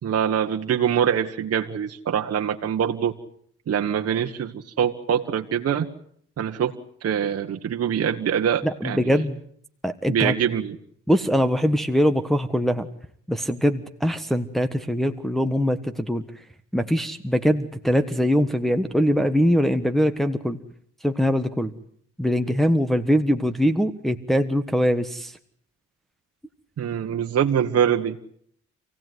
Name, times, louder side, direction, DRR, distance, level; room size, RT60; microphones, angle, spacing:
voice 1, 0.0-3.1 3.7-5.9 6.4-6.7 7.0-9.0 10.1-10.7 26.8-28.2, right 8 dB, 55° right, 4 dB, 1.6 m, -24 dB
voice 2, 8.6-9.4 9.8-10.3 11.1-12.9 13.3-16.2 16.7-20.6 21.0-21.7 22.2-25.3, equal, ahead, 6 dB, 1.4 m, -22 dB
27.5 x 17.0 x 9.5 m, 0.65 s
cardioid pair, 90°, 30 cm